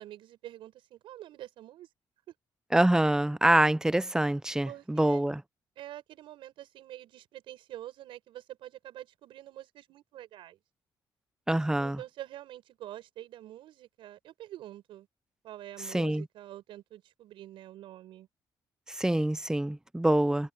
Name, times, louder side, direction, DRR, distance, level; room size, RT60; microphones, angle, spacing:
voice 1, 0.0-1.9 2.3-2.4 4.6-5.3 5.8-10.6 11.8-15.1 15.4-18.3, right 13 dB, 85° right, 7.5 m, -46 dB
voice 2, 2.7-5.4 11.5-12.0 15.9-16.2 19.0-20.5, right 1 dB, 5° right, 0.6 m, -25 dB
cardioid pair, 85°, 8 cm